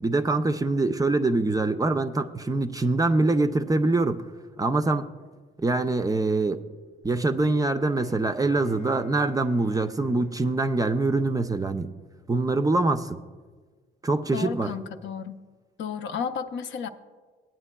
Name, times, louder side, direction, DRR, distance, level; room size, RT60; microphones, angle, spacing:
voice 1, 0.0-4.2 4.6-5.1 5.6-6.6 7.0-11.9 12.3-13.2 14.0-14.7, right 2 dB, 20° right, 8 dB, 0.4 m, -24 dB
Bowed string instrument, 8.0-12.2, equal, 30° left, 0.7 m, -49 dB
voice 2, 14.3-15.4 15.8-16.9, left 6 dB, 70° left, 8 dB, 0.6 m, -32 dB
18.0 x 9.1 x 2.2 m, 1.4 s
cardioid pair, 90°, 20 cm